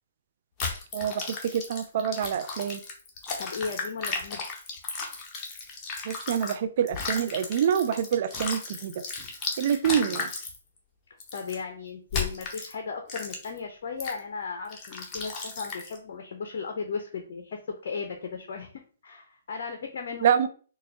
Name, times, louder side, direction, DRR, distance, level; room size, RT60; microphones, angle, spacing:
sound 1, 0.6-6.6 6.9-10.6 11.2-11.6 12.1-12.7 13.1-13.6 14.0-14.2 14.7-16.0, left 4 dB, 25° left, 0.9 m, -35 dB
voice 1, 0.9-2.8 6.1-8.9 9.6-10.3 20.2-20.5, right 8 dB, 50° right, 10 dB, 0.4 m, -26 dB
voice 2, 3.4-4.4 11.3-20.5, left 5 dB, 55° left, 5 dB, 0.6 m, -36 dB
3.9 x 2.3 x 3.1 m, 0.40 s
hypercardioid pair, 135°, 0 cm